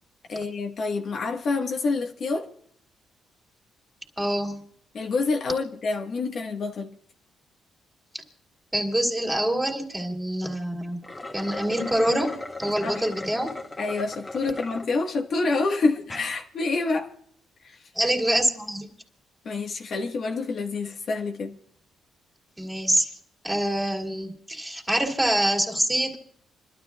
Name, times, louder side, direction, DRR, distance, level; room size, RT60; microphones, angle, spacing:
voice 1, 0.3-2.5 4.9-7.0 12.8-13.1 13.8-17.1 17.6-17.8 19.4-21.6, left 3 dB, 55° left, 1.4 m, -27 dB
voice 2, 4.2-4.6 8.7-11.1 11.3-13.5 17.9-18.9 22.6-23.1 23.4-26.2, right 1 dB, 10° right, 3.0 m, -25 dB
sound 1, 10.9-14.9 15.4-15.5 16.0-16.3, left 2 dB, 15° left, 1.9 m, -37 dB
28.5 x 12.5 x 2.3 m
cardioid pair, 90°, 0 cm